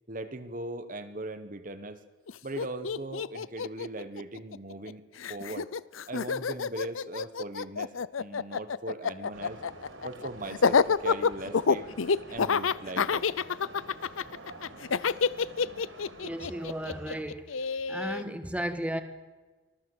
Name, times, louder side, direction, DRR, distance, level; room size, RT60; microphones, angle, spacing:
voice 1, 0.1-2.0 2.4-5.0 5.3-5.7 6.1-7.9 8.2-9.6 10.0-11.9 12.3-13.3, right 2 dB, 40° right, 9 dB, 1.3 m, -39 dB
Laughter, 2.3-2.4 2.6-4.9 5.2-18.2, left 5 dB, 85° left, 0.6 m, -28 dB
sound 1, 9.3-17.2, right 2 dB, 80° right, 4.8 m, -48 dB
voice 2, 16.2-17.5 17.9-19.0, equal, 5° right, 7 dB, 1.7 m, -34 dB
24.5 x 17.5 x 8.1 m, 1.3 s
head